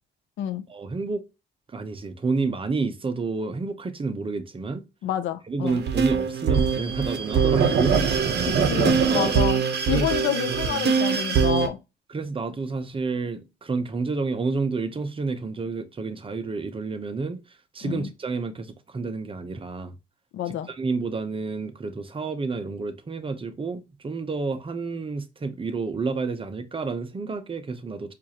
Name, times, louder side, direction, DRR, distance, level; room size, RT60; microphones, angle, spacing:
voice 1, 0.7-1.2 1.7-4.8 5.5-8.0 9.1-9.4 9.9-10.1 10.5-10.9 12.1-17.4 17.7-19.9 20.4-28.1, right 4 dB, 25° right, 0.7 m, -30 dB
voice 2, 5.0-5.8 8.4-11.8 17.8-18.1 20.3-20.7, left 10 dB, 75° left, 0.6 m, -29 dB
sound 1, 5.7-11.7, right 6 dB, 60° right, 0.8 m, -22 dB
4.5 x 2.5 x 2.8 m
cardioid pair, 90°, 20 cm